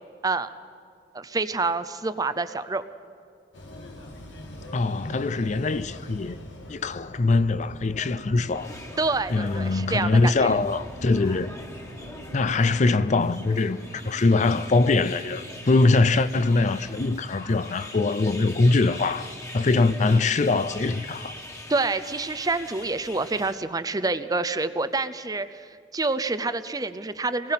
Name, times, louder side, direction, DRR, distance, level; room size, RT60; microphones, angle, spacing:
voice 1, 1.1-2.8 9.0-10.5 21.7-27.5, right 3 dB, 20° right, 0.6 m, -27 dB
sound 1, 3.5-12.7, left 1 dB, 85° left, 2.2 m, -43 dB
voice 2, 4.7-6.4 6.7-8.7 9.3-11.5 12.3-19.3 19.5-21.3, left 3 dB, 40° left, 0.5 m, -22 dB
sound 2, 8.5-23.5, left 1 dB, 15° left, 1.6 m, -43 dB
sound 3, 10.5-16.4, equal, 65° right, 2.2 m, -47 dB
25.5 x 20.0 x 5.7 m
head